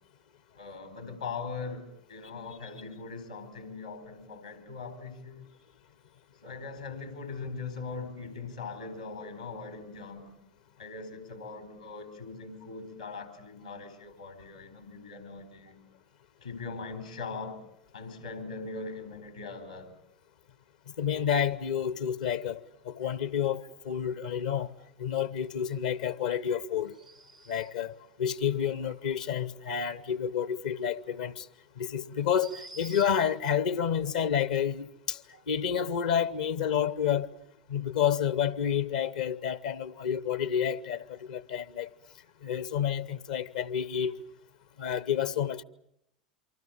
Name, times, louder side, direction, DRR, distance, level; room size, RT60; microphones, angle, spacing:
voice 1, 0.5-5.5 6.4-10.3 10.8-15.8 16.4-17.6 17.9-19.9, left 4 dB, 85° left, 4.3 m, -41 dB
voice 2, 21.0-24.7 25.0-26.9 27.5-31.5 31.8-37.3 37.7-41.9 42.4-44.1 44.8-45.6, left 8 dB, 70° left, 0.9 m, -29 dB
sound 1, 26.8-27.9 31.0-31.1 32.2-33.4, right 3 dB, 90° right, 1.7 m, -49 dB
27.5 x 24.5 x 7.3 m
figure-of-eight pair, 80°, 4 cm